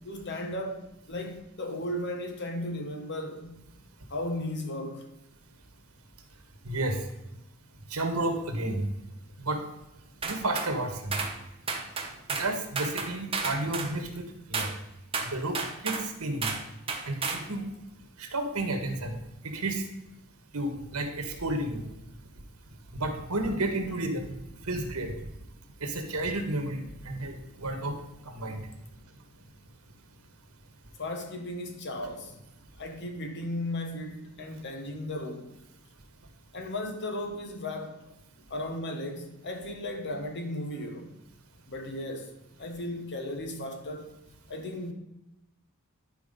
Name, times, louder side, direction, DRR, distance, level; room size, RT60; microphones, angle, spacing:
voice 1, 0.0-3.6 4.1-5.1 31.0-32.4 32.8-35.5 36.5-38.0 38.5-41.2 41.7-44.1 44.5-44.9, left 1 dB, 55° left, 1.4 m, -35 dB
voice 2, 6.6-7.0 7.9-8.8 9.4-9.6 10.2-11.2 12.4-14.2 14.5-14.7 15.3-15.6 15.8-16.5 17.0-17.7 18.2-19.2 19.4-19.8 20.5-21.8 22.9-24.3 24.7-25.1 25.8-27.9 28.3-28.6, right 2 dB, 85° right, 1.6 m, -31 dB
sound 1, 10.2-10.7 11.1-11.3 11.7-12.5 12.7-13.9 14.5-14.7 15.1-16.1 16.4-16.6 16.9-17.4, right 4 dB, 25° right, 1.1 m, -32 dB
10.5 x 4.7 x 5.4 m
head